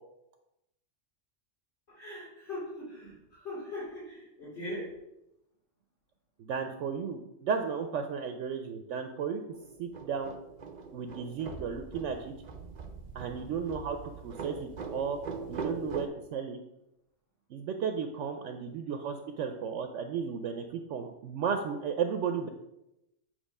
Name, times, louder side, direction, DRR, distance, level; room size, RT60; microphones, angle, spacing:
voice 1, 1.9-5.0, left 1 dB, 55° left, -9 dB, 3.3 m, -41 dB
voice 2, 6.4-9.4 9.8-10.3 10.9-12.3 13.1-14.0 14.2-15.2 15.5-16.6 17.5-22.5, right 6 dB, 70° right, 6 dB, 0.9 m, -34 dB
sound 1, 9.5-16.1, right 4 dB, 45° right, 0.6 m, -42 dB
8.2 x 3.1 x 5.3 m, 0.88 s
omnidirectional pair, 1.3 m